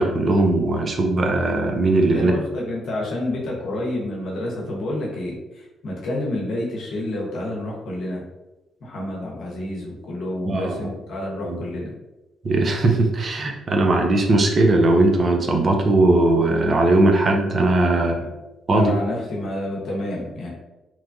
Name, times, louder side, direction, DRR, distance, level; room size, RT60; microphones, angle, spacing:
voice 1, 0.0-2.3 10.4-10.9 11.4-11.6 12.4-18.2 18.7-18.9, right 2 dB, 45° right, 2 dB, 0.5 m, -19 dB
voice 2, 1.7-8.2 8.8-11.9 17.9-18.3 18.7-20.5, left 1 dB, 65° left, -3 dB, 0.8 m, -29 dB
2.9 x 2.2 x 2.5 m, 1.0 s
hypercardioid pair, 45°, 0 cm